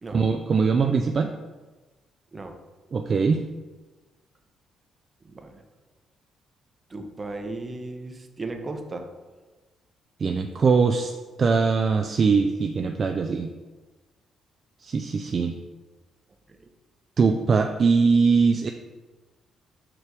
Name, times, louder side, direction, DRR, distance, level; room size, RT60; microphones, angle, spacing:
voice 1, 0.1-1.3 2.9-3.4 10.2-11.1 11.4-13.5 14.8-15.6 17.2-18.7, right 5 dB, 45° right, 5 dB, 0.4 m, -21 dB
voice 2, 5.2-5.6 6.9-9.1 16.6-16.7, right 2 dB, 30° right, 5 dB, 0.8 m, -36 dB
5.0 x 4.6 x 4.7 m, 1.2 s
cardioid pair, 90°, 0 cm